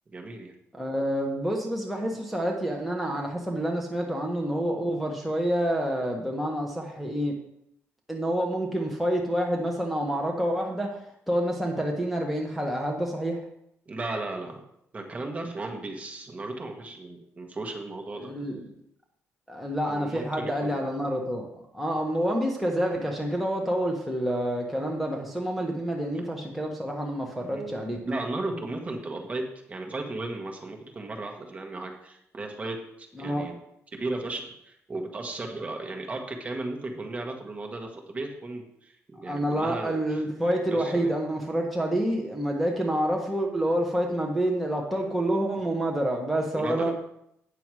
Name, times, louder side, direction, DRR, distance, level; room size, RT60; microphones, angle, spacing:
voice 1, 0.1-0.6 13.9-14.6 14.9-18.3 19.9-20.8 27.5-27.8 28.0-33.5 34.0-40.2 40.7-41.1 46.5-46.9, right 2 dB, 25° right, 2 dB, 1.6 m, -35 dB
voice 2, 0.7-7.3 8.1-10.9 11.3-13.4 18.1-18.7 19.5-21.5 21.7-28.0 33.2-33.5 39.2-46.9, right 1 dB, ahead, -1 dB, 1.3 m, -28 dB
9.1 x 6.9 x 4.8 m, 0.75 s
cardioid pair, 110°, 5 cm